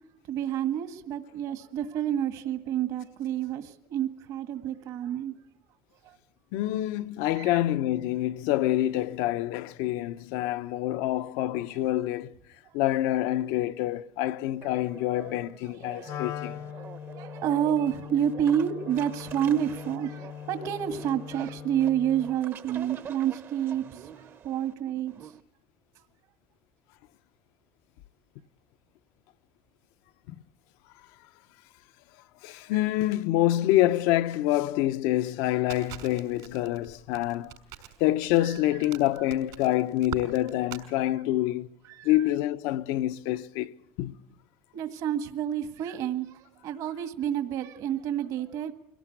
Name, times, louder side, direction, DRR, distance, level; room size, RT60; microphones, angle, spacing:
voice 1, 0.3-5.3 6.0-6.2 7.4-7.6 15.9-16.2 17.2-24.1 24.4-25.1 41.9-42.1 44.7-48.7, right 10 dB, 60° right, 1.8 m, -29 dB
voice 2, 6.5-12.3 12.7-16.6 30.3-30.4 32.4-37.6 38.0-41.7 42.0-43.7 44.0-44.2, left 14 dB, 85° left, 0.8 m, -26 dB
sound 1, 14.6-25.4, right 7 dB, 35° right, 0.9 m, -46 dB
Wind instrument woodwind instrument, 16.0-22.4, left 10 dB, 55° left, 0.8 m, -41 dB
Crackle, 35.7-40.8, right 12 dB, 75° right, 5.4 m, -43 dB
24.0 x 17.5 x 9.2 m
cardioid pair, 145°, 6 cm